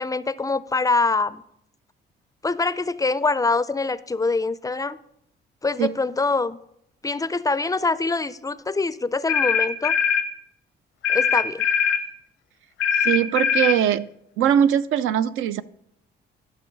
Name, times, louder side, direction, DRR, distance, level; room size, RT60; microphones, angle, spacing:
voice 1, 0.0-1.4 2.4-5.0 5.6-6.6 7.0-9.9 11.1-11.7, left 3 dB, 15° left, 16 dB, 0.4 m, -24 dB
sound 1, 9.3-10.3 11.0-12.0 12.8-13.8, left 7 dB, 90° left, 0.7 m, -21 dB
voice 2, 13.0-14.1 14.4-15.6, right 9 dB, 85° right, 13 dB, 0.4 m, -21 dB
14.5 x 5.9 x 3.9 m, 0.77 s
cardioid pair, 90°, 20 cm